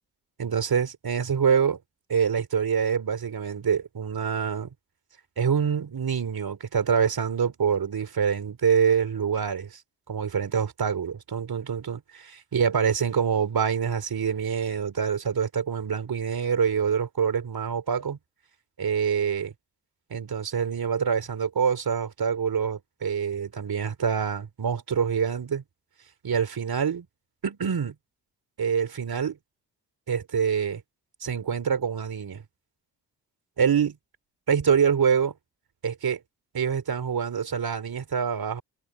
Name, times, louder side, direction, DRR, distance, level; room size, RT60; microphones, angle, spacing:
voice 1, 0.4-1.8 2.1-4.7 5.4-9.7 10.1-18.2 18.8-19.5 20.1-25.6 26.2-27.1 27.4-27.9 28.6-29.4 30.1-30.8 31.2-32.4 33.6-34.0 34.5-35.3 35.8-36.2 36.5-38.6, right 7 dB, 55° right, 3.9 m, -25 dB
supercardioid pair, 50°, 42 cm